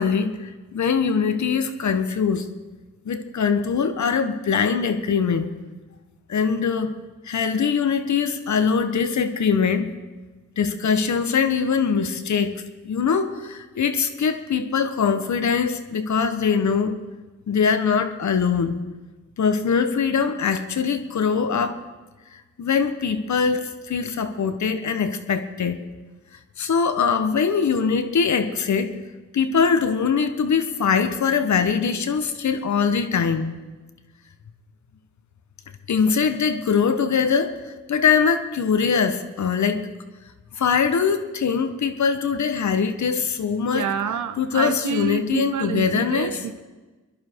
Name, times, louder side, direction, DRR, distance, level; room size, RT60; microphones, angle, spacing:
voice 1, 0.0-2.5 3.0-5.5 6.3-6.9 7.2-9.9 10.6-17.0 17.5-18.8 19.4-21.8 22.3-25.8 26.6-29.0 29.3-33.5 35.9-39.9 40.5-43.8 44.4-46.4, left 6 dB, 60° left, 1.4 m, -22 dB
voice 2, 43.7-46.6, right 6 dB, 65° right, 0.9 m, -28 dB
23.5 x 11.0 x 4.7 m
supercardioid pair, 50°, 33 cm